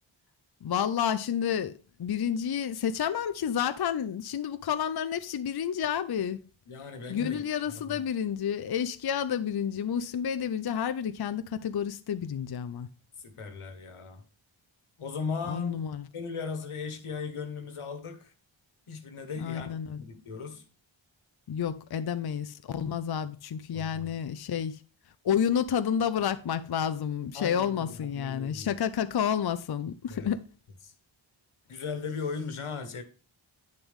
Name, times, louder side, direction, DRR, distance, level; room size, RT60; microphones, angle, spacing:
voice 1, 0.6-6.4 7.1-12.9 15.5-16.0 19.4-20.0 21.5-24.8 25.2-30.4, left 8 dB, 50° left, 0.6 m, -30 dB
voice 2, 6.7-7.4 7.7-8.0 13.2-14.2 15.0-15.8 16.1-18.3 18.9-20.6 23.7-24.1 27.3-28.7 30.1-30.3 30.8-30.9 31.7-33.0, left 5 dB, 90° left, 1.6 m, -37 dB
9.1 x 7.0 x 3.5 m
wide cardioid pair, 65°, 49 cm